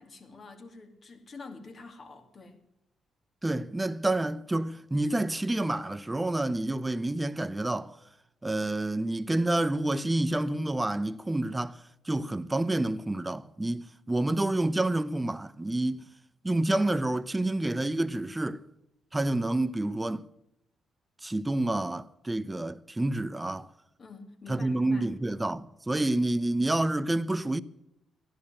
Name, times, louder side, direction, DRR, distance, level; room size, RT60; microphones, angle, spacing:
voice 1, 0.0-2.6 24.0-25.1, left 4 dB, 45° left, 2.5 m, -47 dB
voice 2, 3.4-8.0 8.4-16.1 16.4-18.6 19.1-20.3 21.2-23.7 24.5-27.6, right 2 dB, 15° right, 0.7 m, -28 dB
14.0 x 11.0 x 7.9 m
supercardioid pair, 65°, 0 cm